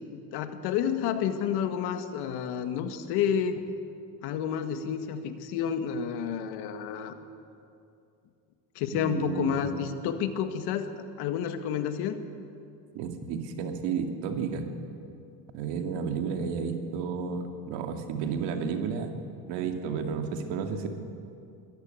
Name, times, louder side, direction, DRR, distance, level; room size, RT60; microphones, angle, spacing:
voice 1, 0.1-3.7 4.2-7.1 8.8-12.2, left 8 dB, 70° left, 8 dB, 1.7 m, -30 dB
voice 2, 8.9-9.7 12.9-14.6 15.5-19.1 19.5-20.9, right 6 dB, 80° right, 5 dB, 2.4 m, -32 dB
21.5 x 13.5 x 9.3 m, 2.5 s
cardioid pair, 145°, 41 cm